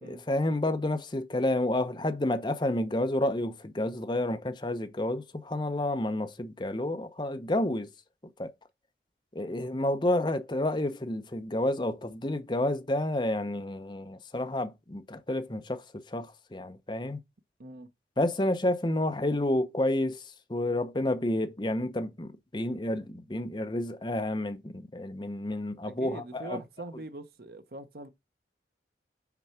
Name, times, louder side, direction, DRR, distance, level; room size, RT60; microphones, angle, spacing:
voice 1, 0.0-7.9 8.4-8.5 9.3-17.2 18.2-20.2 20.5-26.6, left 1 dB, 25° left, 0.7 m, -30 dB
voice 2, 25.8-28.1, right 1 dB, 55° right, 0.8 m, -43 dB
5.9 x 4.6 x 5.7 m
head